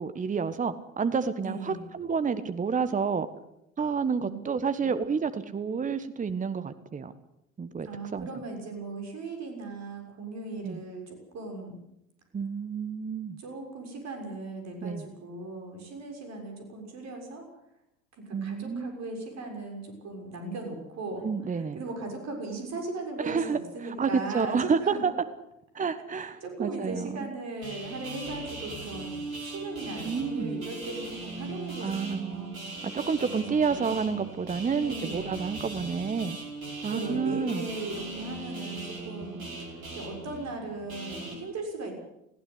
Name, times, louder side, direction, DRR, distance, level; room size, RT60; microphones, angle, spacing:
voice 1, 0.0-3.3 3.8-7.1 7.6-7.9 8.1-8.3 10.6-10.8 12.3-13.4 14.8-15.0 18.3-18.9 21.2-21.8 23.2-25.1 25.7-27.3 29.9-30.6 31.8-32.4 32.8-36.4 36.8-37.7, right 5 dB, 20° right, 12 dB, 1.3 m, -29 dB
voice 2, 1.4-1.8 4.2-4.4 4.8-4.9 7.8-11.7 13.4-17.4 18.2-25.0 26.2-32.5 33.2-34.1 34.8-35.4 36.9-41.9, right 3 dB, 40° right, 3 dB, 6.7 m, -38 dB
sound 1, 27.6-41.3, right 2 dB, 80° right, 5.2 m, -39 dB
21.5 x 16.0 x 8.3 m, 0.82 s
figure-of-eight pair, 65°, 41 cm